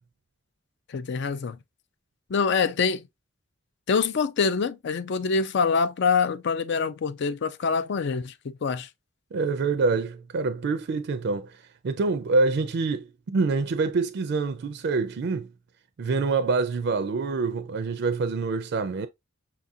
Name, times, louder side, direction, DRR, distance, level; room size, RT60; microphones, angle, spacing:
voice 1, 0.9-1.6 2.3-3.1 3.9-8.9, left 5 dB, 60° left, 0.4 m, -25 dB
voice 2, 9.3-15.5 16.0-19.1, right 4 dB, 60° right, 0.4 m, -26 dB
5.7 x 2.4 x 2.6 m
head